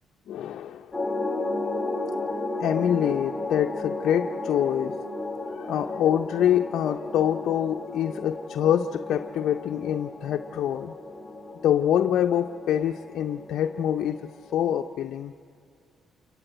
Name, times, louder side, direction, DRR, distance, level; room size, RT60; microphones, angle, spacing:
voice 1, 0.3-1.0 2.6-5.0 5.5-10.9 11.6-15.3, left 10 dB, 75° left, 4 dB, 0.5 m, -25 dB
sound 1, 0.9-14.9, left 2 dB, 20° left, 2.7 m, -34 dB
27.5 x 21.0 x 7.9 m, 2.3 s
cardioid pair, 90°, 0 cm